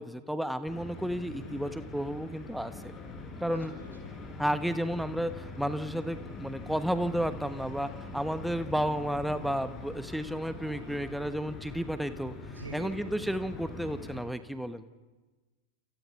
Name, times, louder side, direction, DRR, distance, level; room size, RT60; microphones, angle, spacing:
voice 1, 0.0-2.7 3.4-3.7 4.4-12.3 12.7-14.8, equal, ahead, 11 dB, 1.1 m, -32 dB
sound 1, 0.7-14.2, left 3 dB, 30° left, 7.3 m, -43 dB
voice 2, 1.4-1.7 3.4-4.2 10.7-11.0 12.5-13.1, right 1 dB, 75° right, 4 dB, 6.1 m, -46 dB
28.5 x 28.5 x 5.8 m, 1.3 s
figure-of-eight pair, 90°, 0 cm